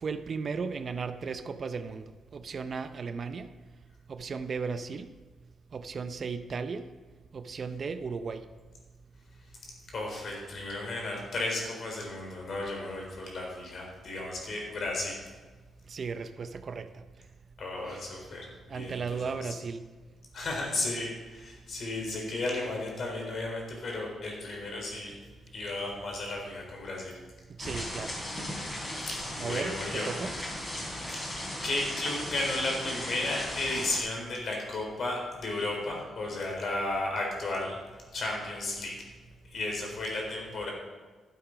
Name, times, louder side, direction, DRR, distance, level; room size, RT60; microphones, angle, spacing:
voice 1, 0.0-3.5 4.1-5.1 5.7-6.9 7.3-8.4 15.9-17.0 17.9-18.0 18.7-19.8 27.6-28.1 29.4-30.3, right 5 dB, 45° right, 10 dB, 0.6 m, -35 dB
voice 2, 9.9-15.3 17.6-19.5 20.3-25.2 25.5-27.1 29.1-30.1 31.1-31.2 31.6-37.8 38.1-38.9 39.5-40.7, left 2 dB, 55° left, -1 dB, 4.1 m, -34 dB
sound 1, 27.6-34.0, left 1 dB, 30° left, 3.8 m, -37 dB
12.0 x 8.3 x 5.1 m, 1.3 s
cardioid pair, 100°, 0 cm